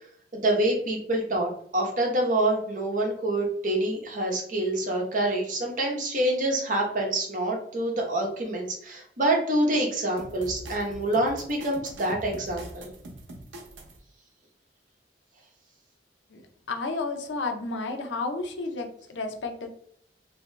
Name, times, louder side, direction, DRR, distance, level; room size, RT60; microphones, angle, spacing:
voice 1, 0.3-12.9, right 1 dB, 45° right, 1 dB, 0.8 m, -26 dB
sound 1, 10.2-14.0, right 1 dB, 90° right, 0.6 m, -43 dB
voice 2, 16.3-19.7, left 3 dB, 85° left, 5 dB, 0.6 m, -32 dB
2.9 x 2.7 x 3.2 m, 0.65 s
head